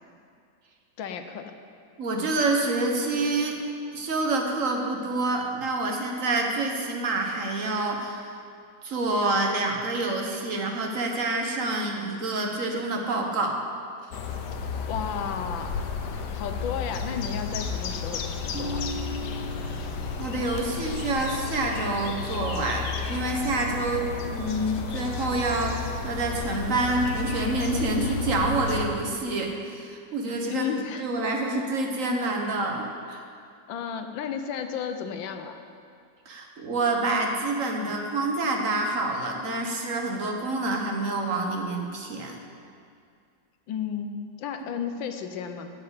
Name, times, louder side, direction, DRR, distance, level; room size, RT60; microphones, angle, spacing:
voice 1, 1.0-1.5 14.9-15.7 16.3-18.9 30.5-31.1 31.8-31.9 33.7-35.6 43.7-45.7, left 7 dB, 90° left, 7 dB, 1.6 m, -33 dB
voice 2, 2.0-3.6 3.9-8.4 8.8-13.6 20.2-30.7 31.0-33.2 36.2-42.3, right 2 dB, 45° right, 2 dB, 1.5 m, -27 dB
sound 1, 14.1-28.9, left 5 dB, 65° left, 1.4 m, -32 dB
sound 2, 18.5-24.6, equal, 10° right, 1.3 m, -42 dB
10.0 x 7.7 x 8.1 m, 2.4 s
omnidirectional pair, 2.0 m